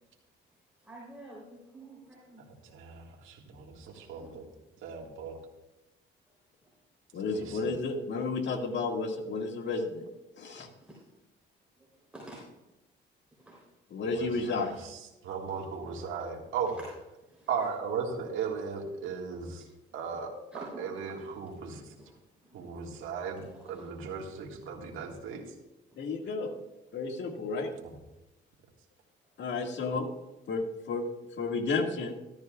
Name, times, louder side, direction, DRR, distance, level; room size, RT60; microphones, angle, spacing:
voice 1, 0.8-2.4 3.8-4.3 10.9-11.0 12.1-12.4 13.4-13.6 14.4-14.8 17.3-17.5 20.5-21.1, right 1 dB, 5° right, -5 dB, 3.6 m, -48 dB
voice 2, 2.4-4.5 4.8-5.4 7.3-7.7 14.0-16.8 17.5-19.6 19.9-22.0 22.5-25.4 27.8-27.9, right 6 dB, 85° right, -1 dB, 1.8 m, -37 dB
voice 3, 7.1-10.0 10.4-10.7 13.9-14.7 26.0-26.5 26.9-27.7 29.4-30.1 30.5-31.0 31.4-32.1, left 4 dB, 65° left, 2 dB, 1.9 m, -32 dB
14.0 x 12.5 x 2.4 m, 0.98 s
cardioid pair, 90°, 20 cm